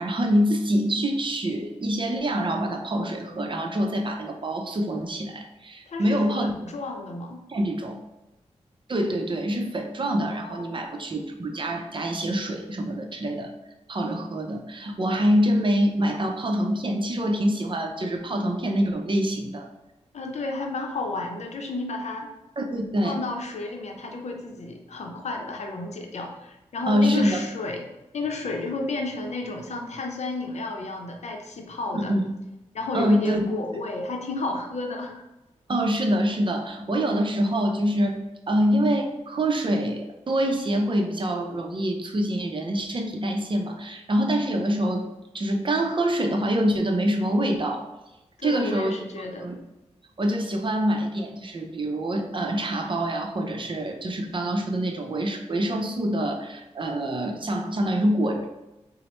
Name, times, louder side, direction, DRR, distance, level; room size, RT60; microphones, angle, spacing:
voice 1, 0.0-6.5 7.5-8.0 8.9-13.5 13.9-19.7 22.6-23.2 26.9-27.4 31.9-32.2 32.9-33.5 35.7-45.0 45.3-47.8 48.4-48.9 49.4-49.6 50.2-58.5, equal, 45° right, 3 dB, 0.6 m, -25 dB
voice 2, 5.9-7.4 10.3-10.8 20.1-22.3 23.0-27.8 28.1-32.1 32.7-35.2 48.4-49.5, left 3 dB, 70° left, 2 dB, 0.6 m, -32 dB
4.2 x 2.0 x 3.0 m, 0.98 s
cardioid pair, 45°, 12 cm